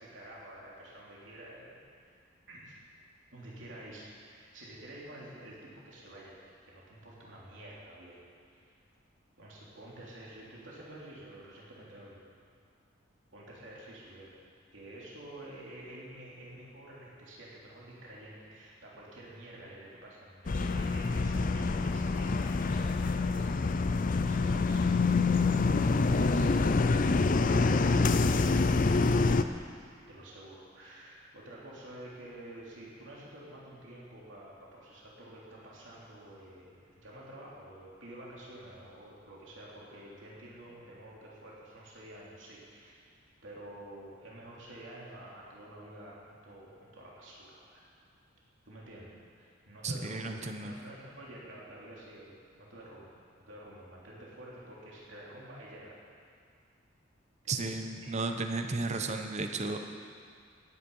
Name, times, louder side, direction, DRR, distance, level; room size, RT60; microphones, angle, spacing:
voice 1, 0.0-2.7 3.3-6.4 6.6-8.2 8.5-8.7 9.4-12.2 13.3-14.3 14.7-25.2 25.7-26.9 27.1-28.9 30.1-43.1 43.4-47.8 48.6-53.1 53.4-56.0 57.4-57.6 58.0-58.3, right 1 dB, 65° right, -5 dB, 3.2 m, -49 dB
sound 1, 20.5-29.4, left 3 dB, 45° left, 0.5 m, -26 dB
voice 2, 49.8-50.7 57.5-59.8, right 3 dB, 35° right, 5 dB, 0.9 m, -34 dB
16.5 x 9.8 x 5.5 m, 2.2 s
head